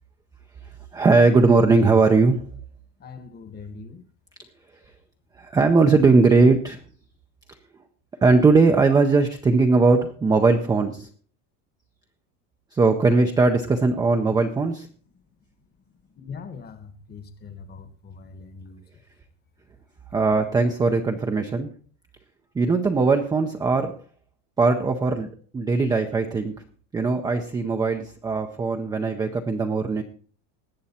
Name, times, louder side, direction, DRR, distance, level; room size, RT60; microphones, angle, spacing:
voice 1, 0.9-2.5 5.4-6.8 8.2-11.1 12.7-14.9 20.1-21.7 22.5-24.0 24.6-25.3 25.5-26.6 26.9-30.0, right 3 dB, 10° right, 0.4 m, -19 dB
voice 2, 3.0-4.0 16.1-18.8, left 5 dB, 20° left, 1.1 m, -41 dB
19.0 x 7.8 x 4.2 m
cardioid pair, 165°, 45 cm